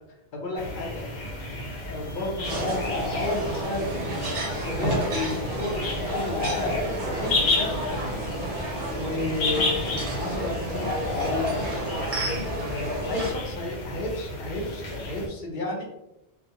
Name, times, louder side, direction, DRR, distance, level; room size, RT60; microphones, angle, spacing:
voice 1, 0.3-1.0 1.8-8.3 9.0-9.8 10.1-11.9 12.7-15.8, left 2 dB, 60° left, 0 dB, 0.7 m, -32 dB
sound 1, 0.6-15.3, left 2 dB, 85° left, 0.9 m, -31 dB
sound 2, 2.4-13.3, right 1 dB, 55° right, 0.7 m, -31 dB
2.4 x 2.2 x 2.7 m, 0.89 s
omnidirectional pair, 1.1 m